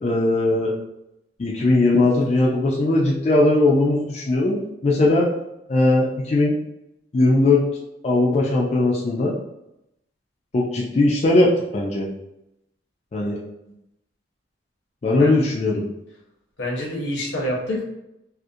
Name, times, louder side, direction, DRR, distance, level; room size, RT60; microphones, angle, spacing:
voice 1, 0.0-0.7 1.4-5.3 5.7-6.5 7.1-7.6 8.0-9.4 10.5-12.1 13.1-13.4 15.0-15.8, left 2 dB, 35° left, -4 dB, 0.3 m, -19 dB
voice 2, 16.6-17.8, left 1 dB, 80° left, -2 dB, 0.7 m, -26 dB
2.4 x 2.0 x 2.6 m, 0.86 s
head